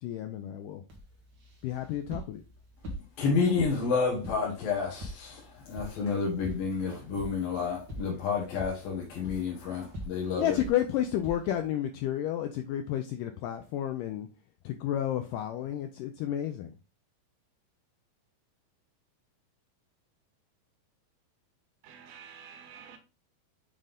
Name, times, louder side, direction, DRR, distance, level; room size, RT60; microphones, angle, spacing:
voice 1, 0.0-0.8 1.6-2.4 10.4-14.3 14.6-16.8, left 11 dB, 85° left, 1.9 m, -31 dB
sound 1, 0.9-11.7, equal, 60° right, 1.2 m, -45 dB
voice 2, 3.2-10.6, left 5 dB, 70° left, 3.1 m, -30 dB
voice 3, 21.8-23.0, right 7 dB, 90° right, 3.0 m, -49 dB
7.6 x 3.7 x 3.5 m
omnidirectional pair, 4.4 m